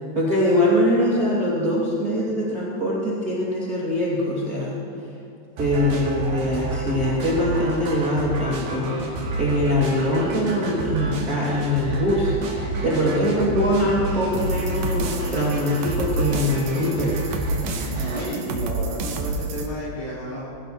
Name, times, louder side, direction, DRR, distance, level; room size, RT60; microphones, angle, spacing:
voice 1, 0.1-4.7 5.6-12.3 12.6-17.3, left 1 dB, 30° right, -8 dB, 2.0 m, -23 dB
sound 1, 5.6-18.3, right 2 dB, 60° right, 4.0 m, -29 dB
voice 2, 12.7-13.1 18.0-20.5, equal, 40° left, -8 dB, 5.6 m, -32 dB
sound 2, 14.3-19.7, right 3 dB, 75° right, 1.9 m, -30 dB
21.5 x 16.0 x 3.1 m, 2.6 s
omnidirectional pair, 5.3 m